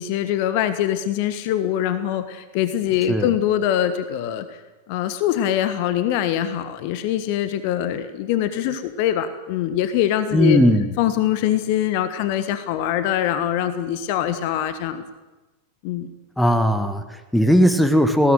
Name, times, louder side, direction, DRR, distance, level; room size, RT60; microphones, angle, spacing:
voice 1, 0.0-4.6 4.9-10.6 11.0-15.0 15.8-16.1, left 11 dB, 45° left, 11 dB, 1.4 m, -23 dB
voice 2, 10.3-11.0 16.4-18.3, equal, 5° left, 9 dB, 1.6 m, -18 dB
20.5 x 17.5 x 7.8 m, 1.1 s
figure-of-eight pair, 90°, 0 cm